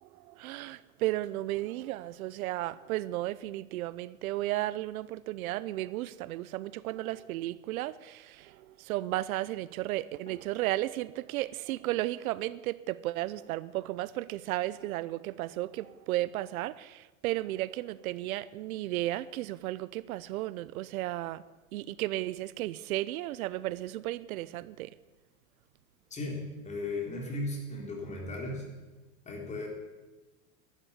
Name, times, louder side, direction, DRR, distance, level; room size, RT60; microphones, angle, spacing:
voice 1, 0.0-21.4 21.7-24.9, right 16 dB, 85° right, 0.8 m, -34 dB
voice 2, 26.1-28.7 29.2-29.7, left 2 dB, 15° left, 3.8 m, -36 dB
12.0 x 12.0 x 9.8 m
supercardioid pair, 160°, 42 cm